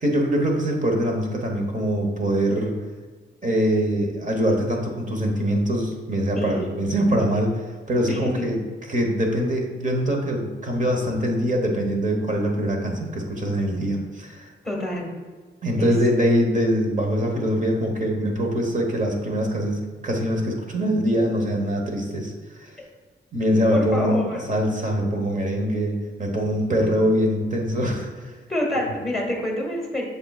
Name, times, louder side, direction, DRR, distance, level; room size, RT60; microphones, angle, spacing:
voice 1, 0.0-2.7 3.4-7.6 7.9-8.6 8.9-14.5 15.6-22.7 23.3-24.2 24.5-28.3 28.7-28.9, equal, 40° right, 1 dB, 1.1 m, -23 dB
voice 2, 6.3-6.7 8.1-8.4 14.6-15.1 15.8-15.9 23.7-24.4 28.5-30.0, left 1 dB, ahead, -2 dB, 1.4 m, -27 dB
6.9 x 6.7 x 2.4 m, 1.4 s
wide cardioid pair, 155°, 21 cm